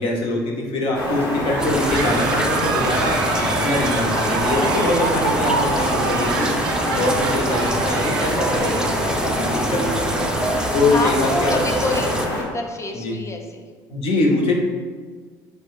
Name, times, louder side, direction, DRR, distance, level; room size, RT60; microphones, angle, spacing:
voice 1, 0.0-6.6 6.9-10.3 10.7-11.6 12.9-13.2 13.9-14.5, left 2 dB, 55° left, -1 dB, 1.0 m, -23 dB
sound 1, 0.9-12.4, left 1 dB, 85° left, 1.1 m, -26 dB
sound 2, 1.5-9.4, right 4 dB, 80° right, 0.5 m, -27 dB
sound 3, 1.6-12.3, right 1 dB, 5° right, 0.5 m, -26 dB
voice 2, 10.9-12.1 12.3-13.6, left 2 dB, 25° left, 3 dB, 0.8 m, -27 dB
5.0 x 2.3 x 4.7 m, 1.5 s
hypercardioid pair, 60°, 11 cm